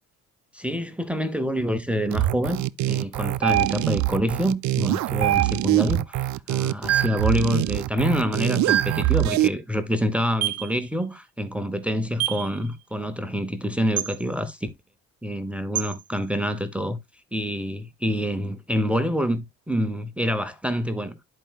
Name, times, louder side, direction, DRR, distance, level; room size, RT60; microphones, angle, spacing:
voice 1, 0.5-14.7 15.2-17.0 17.3-21.2, equal, 5° right, 0.8 m, -27 dB
sound 1, 2.1-9.5, right 15 dB, 70° right, 0.5 m, -24 dB
sound 2, 3.4-4.1 5.2-5.9 6.9-7.3 8.7-9.1 10.4-10.7 12.2-12.5 14.0-14.1 15.7-15.9, right 13 dB, 50° right, 0.8 m, -25 dB
12.5 x 4.6 x 2.3 m
cardioid pair, 90°, 30 cm